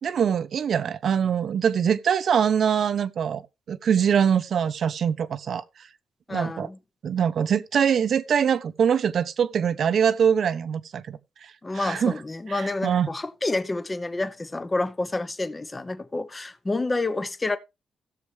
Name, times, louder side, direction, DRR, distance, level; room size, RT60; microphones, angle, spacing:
voice 1, 0.0-3.4 3.7-5.6 6.3-6.7 7.0-11.2 11.7-12.2 12.5-13.1, right 8 dB, 60° right, 0.9 m, -23 dB
voice 2, 6.3-6.8 11.6-17.6, left 2 dB, 20° left, 0.9 m, -29 dB
16.5 x 6.9 x 3.4 m
cardioid pair, 120°, 0 cm